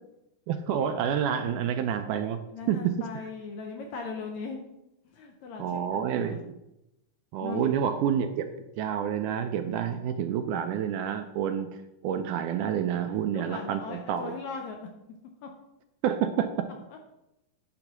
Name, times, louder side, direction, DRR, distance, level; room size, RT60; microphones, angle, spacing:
voice 1, 0.5-2.4 2.7-3.1 5.6-6.5 7.3-11.7 12.0-14.3 16.0-16.5, right 8 dB, 80° right, 8 dB, 1.9 m, -28 dB
voice 2, 2.5-4.6 5.1-6.4 7.4-7.7 13.3-14.9 15.4-15.5, left 4 dB, 75° left, 2 dB, 1.7 m, -38 dB
9.9 x 3.9 x 6.0 m, 0.90 s
omnidirectional pair, 3.9 m